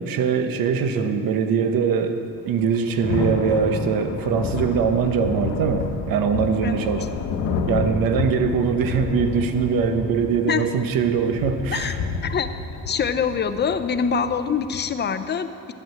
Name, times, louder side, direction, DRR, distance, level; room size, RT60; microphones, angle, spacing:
voice 1, 0.0-2.2 2.5-7.1 7.7-12.0, right 6 dB, 70° right, 7 dB, 1.0 m, -22 dB
Thunder / Rain, 2.5-14.9, left 4 dB, 80° left, 1.2 m, -30 dB
voice 2, 12.9-15.7, left 6 dB, 30° left, 10 dB, 0.5 m, -24 dB
11.0 x 8.4 x 7.9 m, 2.7 s
cardioid pair, 150°, 35 cm